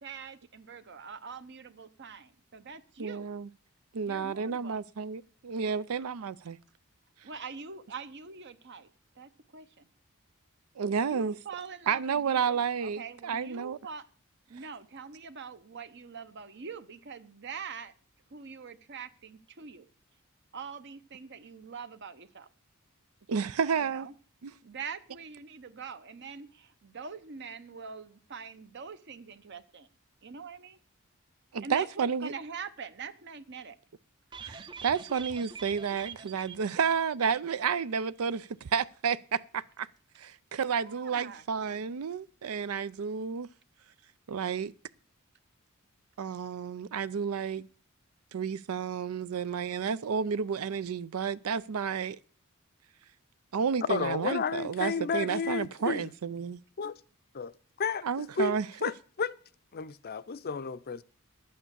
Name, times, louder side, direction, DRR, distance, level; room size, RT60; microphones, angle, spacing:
voice 1, 0.0-3.3 4.0-4.8 7.2-8.9 9.2-9.9 11.1-14.1 14.5-17.9 18.3-19.9 20.5-22.5 23.3-23.5 23.8-24.1 24.6-29.9 30.2-30.8 31.6-33.8 36.7-36.8 40.7-41.4, right 5 dB, 55° right, 0.8 m, -44 dB
voice 2, 3.0-3.5 3.9-6.6 10.8-11.3 11.9-13.8 23.3-24.1 24.4-24.5 31.5-32.3 34.4-39.9 40.2-43.5 44.3-44.7 46.2-47.6 48.3-52.2 53.5-56.6 58.0-58.7, right 6 dB, 90° right, 0.5 m, -31 dB
sound 1, 34.3-37.8 38.0-38.1 38.5-38.6, right 6 dB, 20° right, 0.5 m, -45 dB
voice 3, 53.9-56.1 56.8-57.0 57.3-57.5 57.8-58.6 58.8-59.3 59.7-61.0, left 5 dB, 45° left, 0.5 m, -32 dB
11.0 x 8.6 x 6.8 m
head